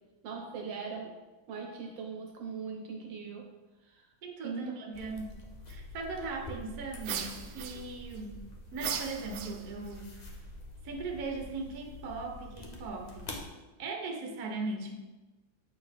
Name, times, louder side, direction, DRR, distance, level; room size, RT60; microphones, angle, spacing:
voice 1, 0.2-1.1 1.5-3.5 3.9-4.1 4.4-4.7 5.1-5.2, right 5 dB, 70° right, 1 dB, 1.5 m, -40 dB
voice 2, 4.2-5.3 5.7-8.4 8.7-10.3 10.8-13.4 13.8-14.9, right 3 dB, 55° right, 1 dB, 1.3 m, -39 dB
sound 1, 4.9-13.5, left 2 dB, 75° left, 0.3 m, -46 dB
sound 2, 7.0-8.2 8.8-9.9, right 8 dB, 90° right, 1.4 m, -38 dB
8.0 x 4.4 x 3.5 m, 1.1 s
omnidirectional pair, 2.2 m